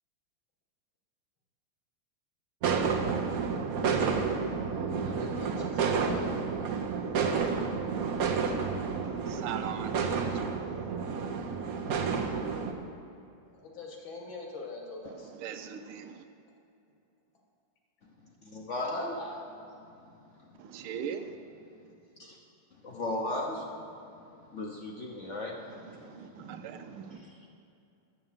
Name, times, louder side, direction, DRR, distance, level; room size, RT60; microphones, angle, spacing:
sound 1, 2.6-12.7, right 5 dB, 60° right, 1.0 m, -30 dB
voice 1, 5.0-6.2 13.5-15.3 19.2-19.3, left 3 dB, 65° left, 0 dB, 2.4 m, -43 dB
voice 2, 9.0-10.9 15.1-16.2 20.6-21.4 25.8-27.2, right 8 dB, 80° right, 8 dB, 1.6 m, -41 dB
voice 3, 18.4-19.2 22.2-22.4 22.8-23.9 24.5-27.5, left 1 dB, 45° left, 0 dB, 1.0 m, -37 dB
10.0 x 7.9 x 7.3 m, 2.7 s
omnidirectional pair, 2.4 m